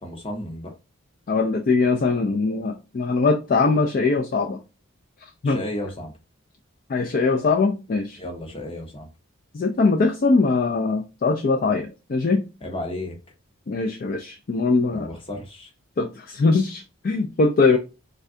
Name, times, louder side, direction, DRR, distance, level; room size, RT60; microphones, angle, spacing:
voice 1, 0.0-0.7 5.4-6.1 8.2-9.1 12.6-13.2 14.9-15.7, left 1 dB, 25° left, 0.8 m, -33 dB
voice 2, 1.3-4.6 5.2-5.6 6.9-8.2 9.5-12.4 13.7-15.1 16.0-17.8, left 3 dB, 40° left, 0.3 m, -21 dB
3.4 x 2.2 x 3.6 m
head